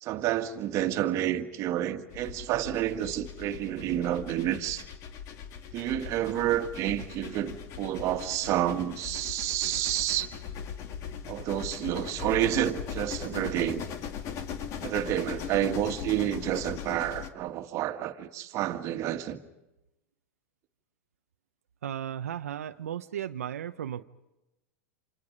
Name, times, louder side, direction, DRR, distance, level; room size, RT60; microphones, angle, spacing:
voice 1, 0.0-4.8 5.7-10.3 11.3-13.8 14.8-19.4, right 12 dB, 40° right, 1.8 m, -29 dB
sound 1, 2.1-17.3, left 8 dB, 40° left, 2.3 m, -39 dB
voice 2, 21.8-24.0, right 10 dB, 90° right, 0.8 m, -35 dB
29.0 x 27.0 x 5.2 m
hypercardioid pair, 120°, 8 cm